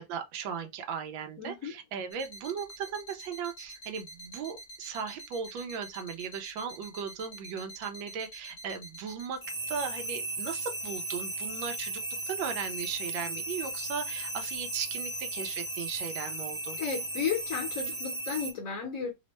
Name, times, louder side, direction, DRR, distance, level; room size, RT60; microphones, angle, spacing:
voice 1, 0.0-9.4 9.7-16.8, right 7 dB, 85° right, 1.3 m, -37 dB
voice 2, 1.4-1.7 16.8-19.1, left 6 dB, 60° left, 1.0 m, -33 dB
sound 1, 2.1-18.5, right 2 dB, 40° left, 0.5 m, -37 dB
3.4 x 2.1 x 3.0 m
omnidirectional pair, 2.1 m